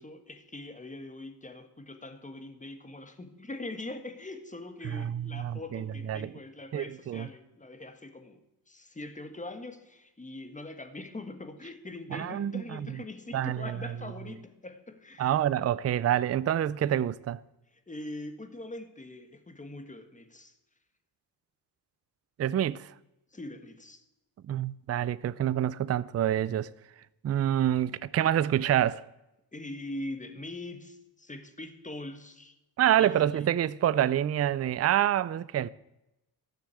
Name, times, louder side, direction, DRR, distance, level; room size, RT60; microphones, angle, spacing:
voice 1, 0.0-8.4 8.7-15.4 17.9-20.6 23.3-24.0 29.5-32.6 32.9-33.5, left 2 dB, 20° left, 1.5 m, -42 dB
voice 2, 4.9-6.3 6.7-7.3 12.1-12.8 13.3-13.7 15.2-17.4 22.4-22.9 24.5-26.7 27.2-29.0 32.8-35.7, right 11 dB, 40° right, 0.4 m, -27 dB
13.0 x 6.5 x 8.2 m
cardioid pair, 90°, 40 cm